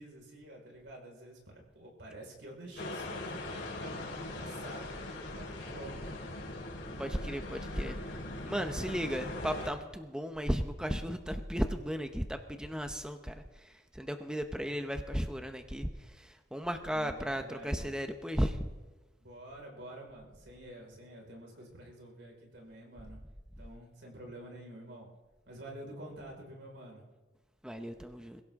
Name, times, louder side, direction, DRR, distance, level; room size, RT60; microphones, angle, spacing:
voice 1, 0.0-6.1 16.9-17.9 19.2-23.2 23.6-25.1 25.4-27.1, right 1 dB, 75° right, 0 dB, 4.9 m, -48 dB
sound 1, 2.8-9.7, left 2 dB, 70° left, 4.7 m, -41 dB
voice 2, 7.0-8.0 8.4-18.7 27.6-28.4, equal, 5° right, 6 dB, 0.8 m, -35 dB
22.0 x 16.5 x 3.7 m, 1.2 s
head